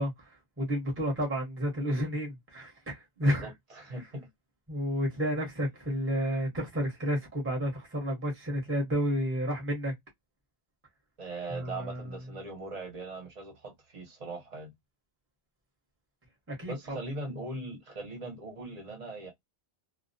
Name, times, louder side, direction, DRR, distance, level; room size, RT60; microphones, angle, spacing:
voice 1, 0.0-3.5 4.7-9.9 11.5-12.1 16.5-17.0, equal, 15° right, 0.8 m, -31 dB
voice 2, 3.2-4.3 11.2-14.7 16.7-19.3, right 2 dB, 40° right, 0.9 m, -40 dB
2.3 x 2.1 x 2.5 m
omnidirectional pair, 1.0 m